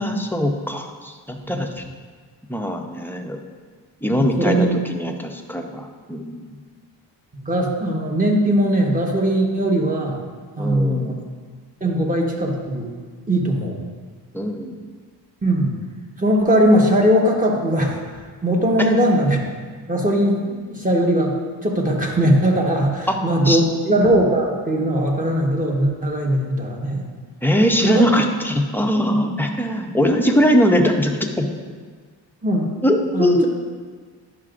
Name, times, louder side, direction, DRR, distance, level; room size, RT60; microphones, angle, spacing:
voice 1, 0.0-1.8 2.5-3.4 4.0-6.4 10.6-11.2 14.3-14.8 18.8-18.9 23.1-23.6 27.4-31.5 32.8-33.5, equal, 5° left, 2 dB, 0.6 m, -21 dB
voice 2, 4.1-4.7 7.3-10.2 10.6-11.2 11.8-12.9 13.3-13.8 15.4-15.8 16.2-18.0 18.4-19.4 19.9-21.4 21.6-27.1 27.8-28.1 32.4-32.7 33.1-33.5, right 1 dB, 20° right, -1 dB, 1.2 m, -19 dB
11.0 x 5.8 x 2.5 m, 1.5 s
cardioid pair, 95°, 43 cm